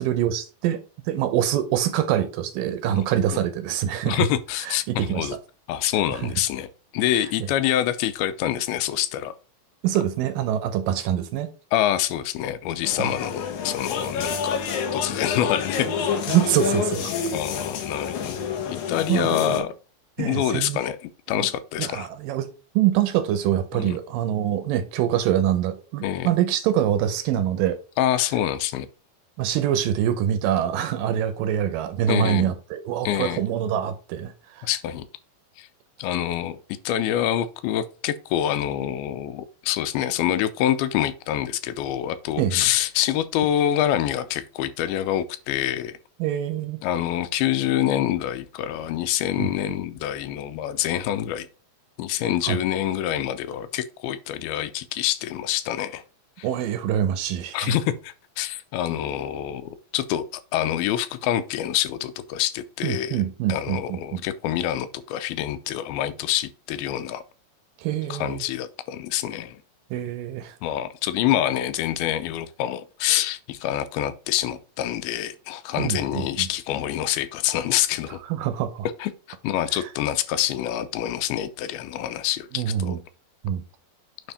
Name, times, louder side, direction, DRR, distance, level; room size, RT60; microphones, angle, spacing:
voice 1, 0.0-4.3 4.7-5.3 6.2-6.3 9.8-11.5 13.0-13.1 16.3-17.2 19.1-19.6 20.2-20.8 21.3-21.5 21.8-22.5 22.8-27.8 29.4-34.7 42.4-42.7 46.2-46.8 49.4-49.5 52.4-52.6 56.4-57.7 62.8-64.2 67.8-68.4 69.9-70.5 75.8-76.5 78.3-78.9 79.7-79.8 82.5-83.0 83.4-83.6, right 11 dB, 80° right, 2.2 m, -25 dB
voice 2, 4.0-5.4 5.7-6.7 6.9-9.3 11.7-14.6 14.9-15.9 17.3-19.7 20.2-22.1 23.7-24.0 26.0-26.3 28.0-28.9 32.1-32.5 33.1-33.4 34.6-35.1 35.6-35.7 36.0-36.6 36.9-46.0 46.8-51.5 52.0-56.0 56.4-56.5 57.5-60.2 60.5-63.2 63.5-67.2 68.1-69.6 70.6-78.2 79.0-79.1 79.4-83.0, left 11 dB, 90° left, 2.5 m, -26 dB
sound 1, 12.8-19.6, left 6 dB, 65° left, 2.1 m, -28 dB
9.3 x 3.5 x 4.2 m
omnidirectional pair, 4.3 m